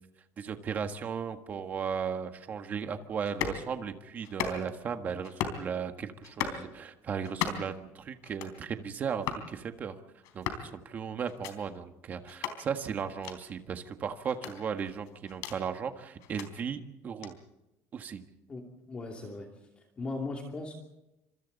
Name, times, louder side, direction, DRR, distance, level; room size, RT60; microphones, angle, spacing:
voice 1, 0.4-9.9 10.3-17.4 17.9-18.2, right 7 dB, 30° right, 7 dB, 1.5 m, -36 dB
sound 1, 3.2-3.6 4.2-4.8 5.2-5.6 6.2-6.6 7.2-7.8 8.2-8.6 9.2-9.5 10.2-10.7 11.2-11.5 12.3-12.6 13.2-13.4 14.3-15.6 16.2-16.5 17.2-17.3, left 9 dB, 85° left, 3.7 m, -36 dB
voice 2, 18.5-19.5 20.0-20.8, left 3 dB, 20° left, 1 dB, 2.7 m, -38 dB
29.5 x 26.5 x 4.1 m, 0.90 s
cardioid pair, 175°, 6 cm